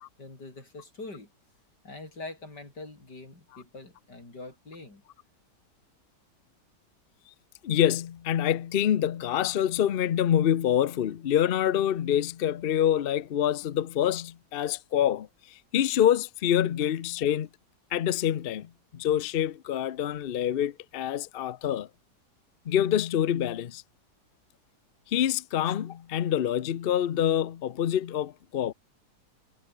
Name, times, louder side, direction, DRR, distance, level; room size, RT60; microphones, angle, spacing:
voice 1, 0.2-1.3 1.8-5.0, left 2 dB, 80° left, 6.5 m, -43 dB
voice 2, 7.6-17.5 17.9-21.9 22.7-23.8 25.1-28.7, left 10 dB, 60° left, 0.6 m, -26 dB
omnidirectional pair, 1.8 m